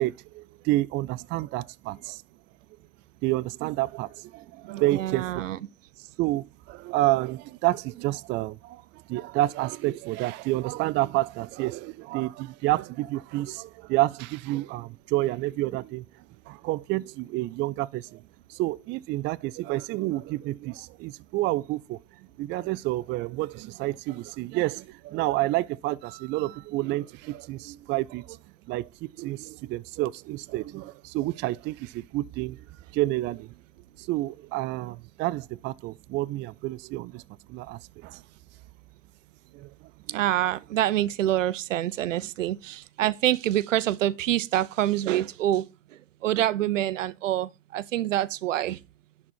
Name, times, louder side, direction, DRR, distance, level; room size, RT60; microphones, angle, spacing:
voice 1, 0.0-2.2 3.2-5.4 6.2-16.0 16.5-18.2 18.5-28.4 28.7-32.6 32.9-33.5 34.0-37.2 37.5-38.2 39.5-39.7 40.1-40.2, right 17 dB, 30° right, 0.4 m, -29 dB
voice 2, 4.7-5.6 40.1-45.6 46.2-48.8, right 13 dB, 80° right, 0.7 m, -26 dB
11.0 x 4.2 x 4.4 m
hypercardioid pair, 95°, 37 cm